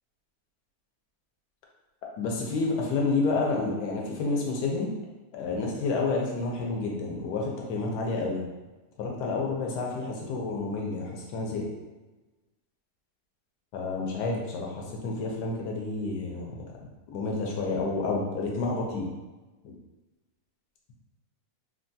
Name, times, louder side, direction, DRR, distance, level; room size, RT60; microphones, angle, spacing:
voice 1, 2.2-4.9 5.3-8.5 9.0-11.7 13.7-19.1, left 3 dB, 90° left, -1 dB, 1.2 m, -30 dB
3.3 x 2.3 x 2.6 m, 1.2 s
omnidirectional pair, 1.7 m